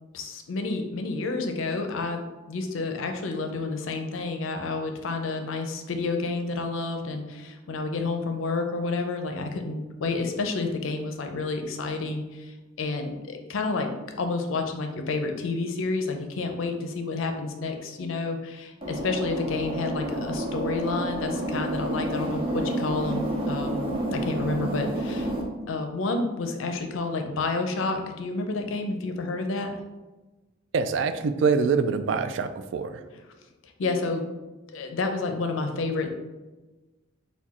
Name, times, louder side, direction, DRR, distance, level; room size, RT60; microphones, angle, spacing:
voice 1, 0.1-13.9 14.2-23.8 24.1-25.3 25.7-29.7 33.1-33.2 33.6-34.2 34.7-36.1, left 3 dB, 80° left, 5 dB, 0.5 m, -30 dB
sound 1, 18.8-25.4, right 1 dB, 25° right, 0.6 m, -29 dB
voice 2, 30.7-33.0, right 5 dB, 65° right, 10 dB, 0.3 m, -25 dB
4.6 x 2.2 x 4.1 m, 1.2 s
head